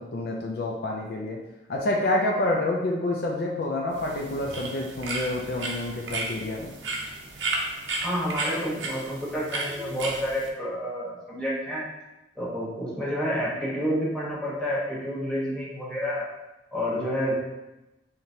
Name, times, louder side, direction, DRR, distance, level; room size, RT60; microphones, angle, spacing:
voice 1, 0.0-1.4 1.7-6.7, left 2 dB, 55° left, 0 dB, 0.4 m, -28 dB
sound 1, 3.9-10.5, right 3 dB, 85° right, 0.7 m, -33 dB
voice 2, 8.0-11.9 12.4-16.2 16.7-17.3, equal, 5° left, -8 dB, 1.2 m, -29 dB
5.0 x 2.9 x 2.8 m, 0.98 s
head